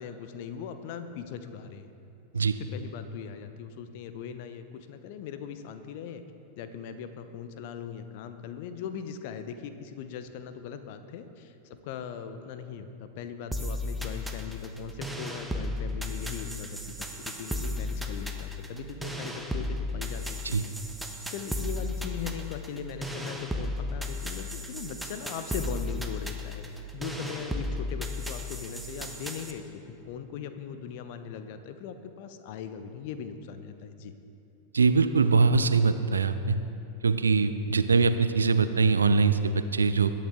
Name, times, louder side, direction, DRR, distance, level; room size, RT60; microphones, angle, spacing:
voice 1, 0.0-1.9 2.4-6.2 6.6-20.6 21.3-34.1, left 7 dB, 50° left, 10 dB, 0.8 m, -40 dB
sound 1, 13.5-29.5, left 1 dB, 5° right, 1.1 m, -35 dB
voice 2, 34.7-36.6 37.0-40.1, right 4 dB, 75° right, 11 dB, 0.5 m, -23 dB
20.0 x 8.8 x 3.8 m, 2.7 s
figure-of-eight pair, 90°, 0 cm